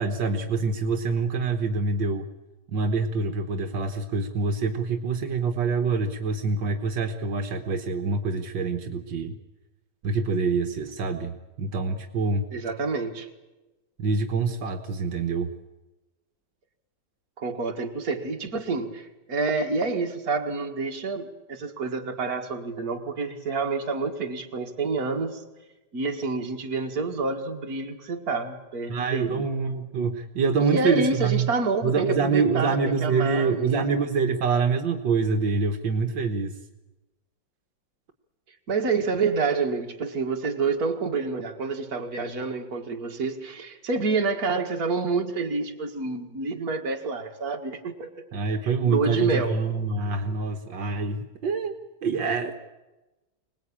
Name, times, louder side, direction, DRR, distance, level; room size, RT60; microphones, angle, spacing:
voice 1, 0.0-2.3 2.7-9.4 10.0-12.5 14.0-15.5 28.9-31.5 31.8-36.6 48.3-51.7 52.0-52.5, right 4 dB, 75° right, 5 dB, 1.9 m, -26 dB
voice 2, 12.5-13.3 17.4-25.4 25.9-29.5 30.6-34.1 38.7-48.2 48.6-49.6, right 4 dB, 50° right, 3 dB, 2.3 m, -28 dB
25.0 x 19.0 x 8.7 m, 1.1 s
omnidirectional pair, 2.0 m